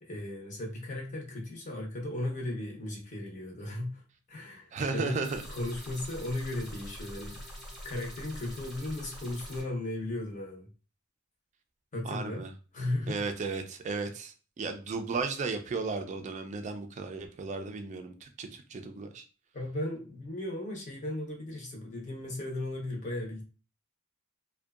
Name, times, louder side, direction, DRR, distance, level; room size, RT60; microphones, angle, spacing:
voice 1, 0.0-4.0 4.3-5.2 5.5-7.4 7.8-10.7 11.9-12.4 12.7-13.2 19.5-23.4, left 1 dB, 40° left, -1 dB, 0.7 m, -36 dB
voice 2, 4.7-5.4 12.0-12.5 13.1-19.2, right 4 dB, 35° right, 6 dB, 0.3 m, -35 dB
sound 1, 5.2-9.6, equal, ahead, 0.6 m, -44 dB
2.6 x 2.1 x 2.3 m, 0.34 s
head